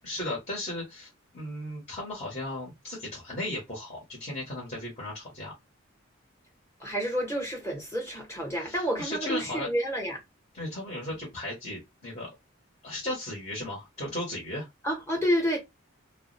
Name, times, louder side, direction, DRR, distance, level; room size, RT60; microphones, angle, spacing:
voice 1, 0.0-5.5 8.6-9.7 10.5-12.3 12.8-14.7, left 1 dB, 35° left, 1.2 m, -36 dB
voice 2, 6.8-10.2 14.8-15.6, equal, 15° left, 1.1 m, -29 dB
2.5 x 2.1 x 3.9 m
head